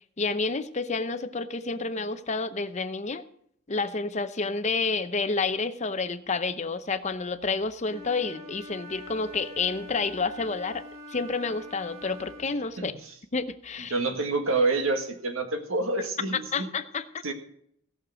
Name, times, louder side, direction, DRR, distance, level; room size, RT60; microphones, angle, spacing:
voice 1, 0.2-3.2 3.7-10.8 11.1-12.9 13.3-13.9 16.5-17.0, left 4 dB, 35° left, 11 dB, 0.7 m, -29 dB
Wind instrument woodwind instrument, 7.9-12.5, equal, 30° right, 3.4 m, -44 dB
voice 2, 13.9-16.7 17.2-17.3, right 3 dB, 80° right, 5 dB, 1.8 m, -27 dB
17.5 x 6.7 x 6.1 m, 0.68 s
head